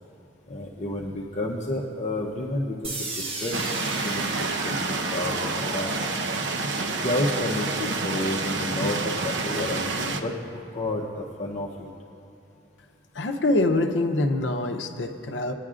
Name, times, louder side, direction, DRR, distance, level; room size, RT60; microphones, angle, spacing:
voice 1, 0.5-3.6 3.9-6.1 7.0-11.9, left 1 dB, 40° left, -2 dB, 0.8 m, -31 dB
sound 1, 2.8-8.8, right 2 dB, 30° right, 0.9 m, -37 dB
sound 2, 3.5-10.2, right 3 dB, 70° right, 0.6 m, -28 dB
voice 2, 13.2-15.5, left 2 dB, 75° left, 5 dB, 0.7 m, -24 dB
19.0 x 10.0 x 2.5 m, 2.8 s
head